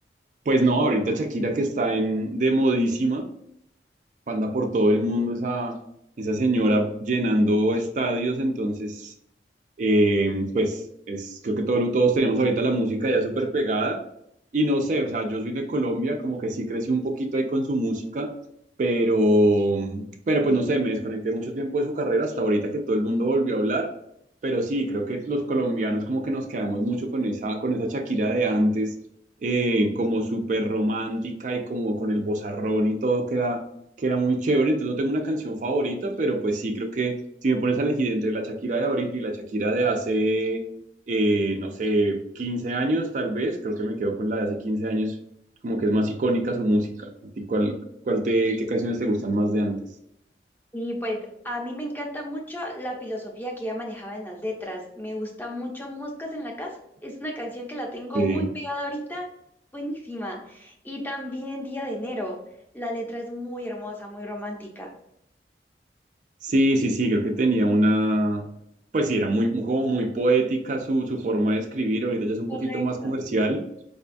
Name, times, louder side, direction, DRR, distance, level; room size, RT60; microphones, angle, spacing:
voice 1, 0.5-3.3 4.3-5.8 6.2-9.1 9.8-14.0 14.5-18.3 18.8-23.9 24.4-28.9 29.4-33.6 34.0-37.2 37.4-40.6 41.1-45.2 45.6-47.8 48.1-49.8 58.1-58.5 66.4-68.5 68.9-73.6, right 1 dB, 45° right, 4 dB, 0.4 m, -24 dB
voice 2, 50.7-51.2 51.4-56.8 57.0-59.3 59.7-62.4 62.7-64.9 72.5-73.1, equal, 10° left, 0 dB, 0.6 m, -33 dB
4.8 x 2.2 x 2.5 m, 0.75 s
head